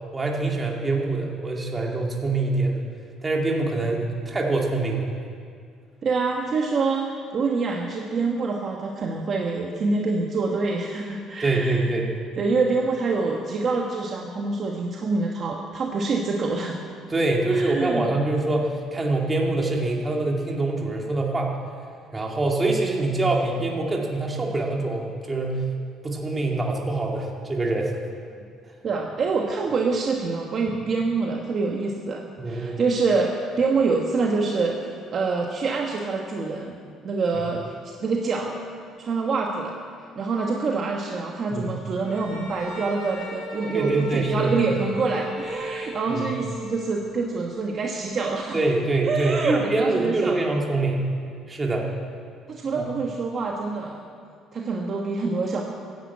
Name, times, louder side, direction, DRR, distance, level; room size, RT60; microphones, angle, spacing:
voice 1, 0.1-2.9 3.2-5.1 11.4-12.1 17.1-21.5 22.1-25.6 26.0-27.9 32.4-32.8 41.5-41.6 43.7-44.5 46.1-46.3 48.5-51.0 51.5-51.9 52.7-52.8, right 2 dB, 15° right, -1 dB, 2.3 m, -24 dB
voice 2, 6.0-11.8 12.4-16.8 17.5-18.1 28.8-36.8 37.0-38.6 39.0-39.7 40.2-48.6 49.1-50.5 52.5-54.0 54.5-55.6, right 4 dB, 40° right, 0 dB, 1.3 m, -26 dB
Bowed string instrument, 42.0-47.2, equal, 85° left, 3.5 m, -37 dB
15.5 x 10.5 x 8.5 m, 2.2 s
cardioid pair, 145°, 0 cm